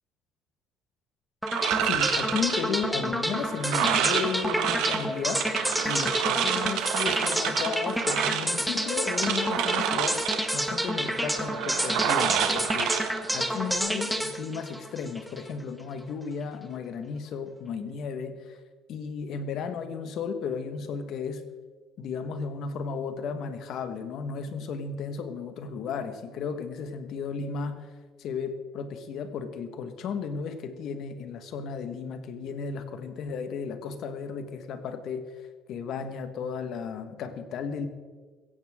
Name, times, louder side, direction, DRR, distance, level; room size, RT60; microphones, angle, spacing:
sound 1, 1.4-15.5, equal, ahead, 1.0 m, -29 dB
sound 2, 1.5-13.8, right 10 dB, 75° right, 1.4 m, -29 dB
voice 1, 1.8-5.6 5.8-10.2 10.5-18.6 18.9-21.4 22.0-27.9 28.2-35.2 35.7-37.9, left 6 dB, 55° left, 9 dB, 1.4 m, -34 dB
16.0 x 15.5 x 3.7 m, 1.4 s
cardioid pair, 145°, 0 cm